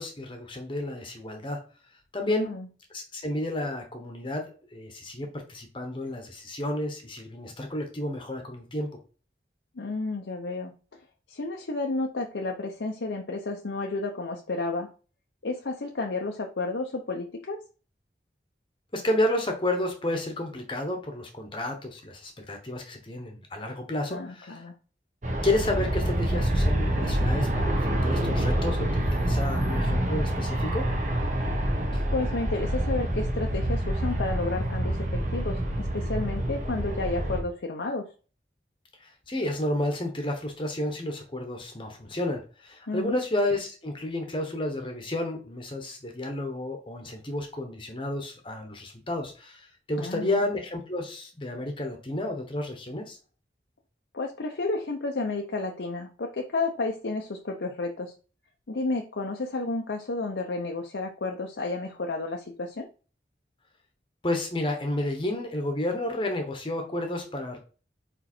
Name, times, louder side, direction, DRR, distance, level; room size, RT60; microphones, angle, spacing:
voice 1, 0.0-1.6 2.1-2.5 2.9-8.9 18.9-24.7 25.4-30.8 31.9-32.0 39.0-53.2 64.2-67.6, left 1 dB, 30° left, 4 dB, 1.0 m, -31 dB
voice 2, 2.3-2.7 9.8-10.7 11.3-14.9 15.4-17.6 24.1-24.7 32.1-38.1 42.9-43.2 50.0-50.4 54.1-58.1 58.7-62.9, left 3 dB, 85° left, 2 dB, 0.7 m, -31 dB
Aircraft, 25.2-37.4, right 1 dB, 45° right, 1.3 m, -27 dB
5.0 x 4.4 x 4.3 m, 0.37 s
head